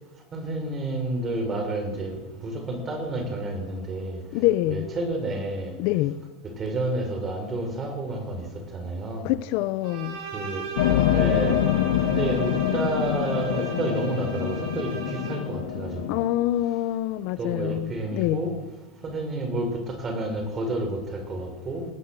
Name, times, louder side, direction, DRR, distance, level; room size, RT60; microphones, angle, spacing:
voice 1, 0.3-4.2 4.7-5.7 6.6-8.4 8.7-9.3 10.3-10.6 11.1-11.6 12.0-14.9 15.3-16.2 17.4-18.5 19.0-21.9, right 2 dB, 25° right, 6 dB, 5.9 m, -30 dB
voice 2, 4.3-4.9 5.8-6.2 9.2-10.2 16.1-18.4, left 15 dB, 55° left, 15 dB, 0.9 m, -25 dB
Bowed string instrument, 9.8-15.7, right 7 dB, 55° right, 5.0 m, -38 dB
sound 1, 10.8-16.2, left 11 dB, 75° left, 1.5 m, -25 dB
19.0 x 18.0 x 7.9 m, 1.1 s
supercardioid pair, 135°, 0 cm